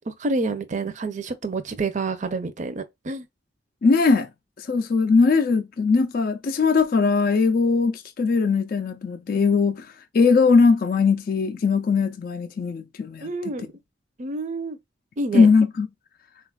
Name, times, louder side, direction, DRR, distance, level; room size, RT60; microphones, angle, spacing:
voice 1, 0.0-3.3 13.2-13.7 14.2-14.8 15.2-15.5, right 3 dB, 40° right, 0.5 m, -28 dB
voice 2, 3.8-4.3 4.6-9.9 10.1-13.3 15.3-15.9, left 4 dB, 50° left, 0.4 m, -20 dB
3.9 x 2.3 x 2.2 m
head